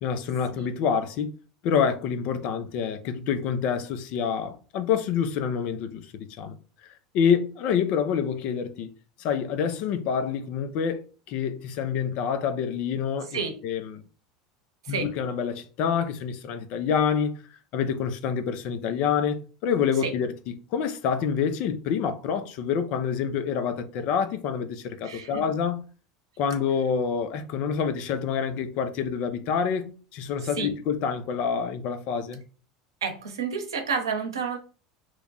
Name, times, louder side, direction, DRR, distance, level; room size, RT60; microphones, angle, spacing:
voice 1, 0.0-1.3 1.6-6.6 6.8-8.9 9.2-14.0 14.9-17.3 17.7-20.3 20.7-25.8 26.4-32.4, left 7 dB, 55° left, 0.6 m, -27 dB
voice 2, 25.0-25.4 30.5-30.7 33.0-34.6, right 5 dB, 85° right, 0.7 m, -30 dB
3.1 x 2.2 x 3.9 m
hypercardioid pair, 80°, 2 cm